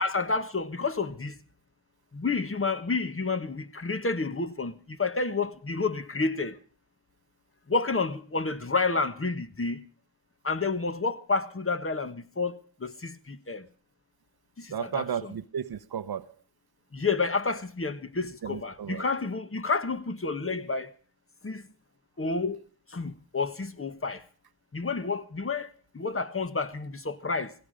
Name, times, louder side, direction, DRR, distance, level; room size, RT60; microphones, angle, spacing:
voice 1, 0.0-1.4 2.1-6.6 7.7-9.8 10.4-13.7 14.6-15.0 16.9-20.9 21.4-21.7 22.2-22.6 22.9-24.2 24.7-27.5, left 4 dB, 30° left, 1.5 m, -30 dB
voice 2, 14.7-16.3 18.4-19.0, right 8 dB, 60° right, 1.0 m, -34 dB
17.0 x 16.5 x 5.2 m
cardioid pair, 50°, 43 cm